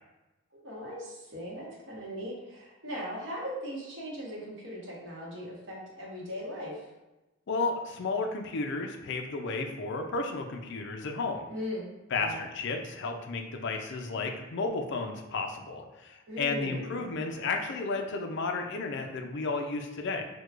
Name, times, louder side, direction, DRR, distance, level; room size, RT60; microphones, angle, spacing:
voice 1, 0.6-6.9 11.5-11.8 12.2-12.5 16.3-17.1, equal, 60° right, -4 dB, 0.9 m, -39 dB
voice 2, 7.5-11.5 12.1-20.2, left 3 dB, 60° left, 3 dB, 0.4 m, -33 dB
4.5 x 2.2 x 2.4 m, 1.0 s
head